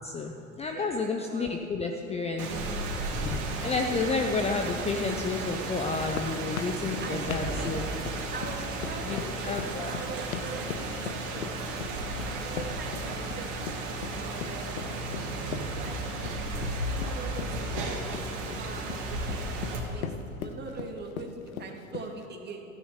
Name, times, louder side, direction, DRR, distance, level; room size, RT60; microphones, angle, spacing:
voice 1, 0.0-2.5 2.9-7.8 9.0-9.9, left 4 dB, 15° left, 4 dB, 0.7 m, -31 dB
voice 2, 0.7-1.6 7.0-7.7 8.3-16.0 16.9-19.4 19.7-22.6, right 4 dB, 20° right, 2 dB, 2.2 m, -43 dB
Rain, 2.4-19.8, right 2 dB, 40° right, 2.9 m, -34 dB
sound 1, 6.1-22.3, left 8 dB, 65° left, 1.1 m, -39 dB
14.5 x 10.5 x 7.4 m, 2.7 s
figure-of-eight pair, 90°, 44 cm